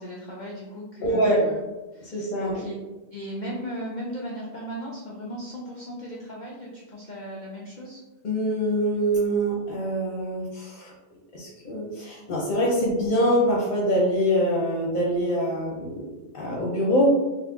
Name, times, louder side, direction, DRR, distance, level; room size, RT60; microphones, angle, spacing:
voice 1, 0.0-1.6 1.9-2.7 3.1-8.0, equal, 80° left, -3 dB, 0.4 m, -36 dB
voice 2, 1.0-1.4 2.1-2.6 8.2-10.9 11.3-17.1, equal, 45° left, -5 dB, 0.7 m, -24 dB
3.7 x 2.5 x 2.3 m, 1.1 s
omnidirectional pair, 1.4 m